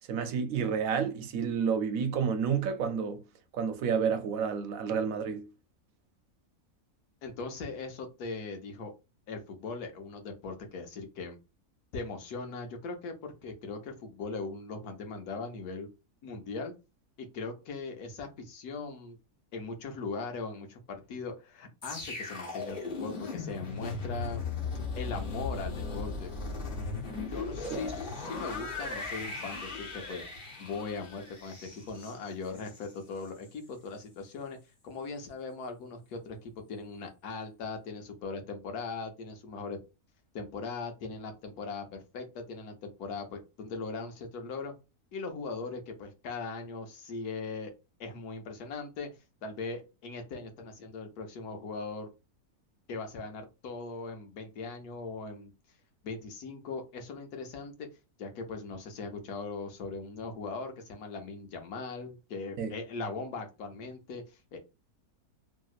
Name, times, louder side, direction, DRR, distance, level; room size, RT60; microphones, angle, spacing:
voice 1, 0.1-3.2 3.5-5.4 62.6-62.7, right 6 dB, 70° right, 0.9 m, -30 dB
voice 2, 7.2-8.9 9.3-11.4 11.9-15.9 16.2-16.7 17.2-19.2 19.5-24.4 25.0-26.3 27.3-30.2 30.6-34.6 34.8-39.8 40.3-44.7 45.1-47.7 48.0-49.1 49.4-52.1 52.9-55.5 56.0-57.9 58.2-64.6, left 4 dB, 90° left, 1.3 m, -39 dB
sound 1, 21.8-32.9 33.2-33.5, left 3 dB, 40° left, 0.9 m, -37 dB
3.0 x 2.7 x 2.3 m
omnidirectional pair, 1.6 m